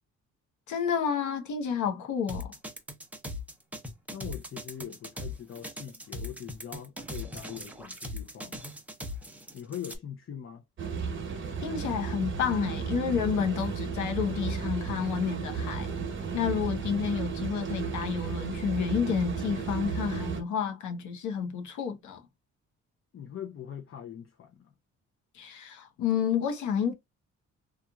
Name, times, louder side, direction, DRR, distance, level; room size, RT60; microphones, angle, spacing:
voice 1, 0.7-2.5 11.6-15.9 16.3-22.2 25.3-26.9, left 7 dB, 75° left, 0.9 m, -30 dB
sound 1, 2.3-10.0, left 1 dB, 5° right, 0.8 m, -39 dB
voice 2, 4.1-8.6 9.5-10.6 23.1-24.7, left 9 dB, 45° left, 0.7 m, -42 dB
sound 2, 10.8-20.4, right 5 dB, 40° right, 1.0 m, -34 dB
3.0 x 2.5 x 2.3 m
cardioid pair, 90°, 30 cm